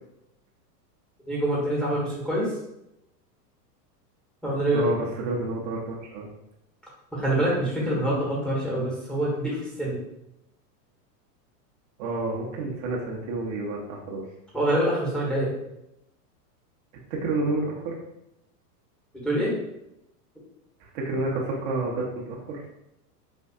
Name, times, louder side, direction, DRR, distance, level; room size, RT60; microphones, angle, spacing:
voice 1, 1.3-2.5 4.4-4.9 7.1-10.0 14.5-15.5 19.2-19.6, right 1 dB, ahead, -6 dB, 1.2 m, -25 dB
voice 2, 4.7-6.3 12.0-14.2 17.1-17.9 20.8-22.6, right 2 dB, 50° right, -3 dB, 0.9 m, -29 dB
4.3 x 2.5 x 2.4 m, 0.84 s
hypercardioid pair, 115°, 49 cm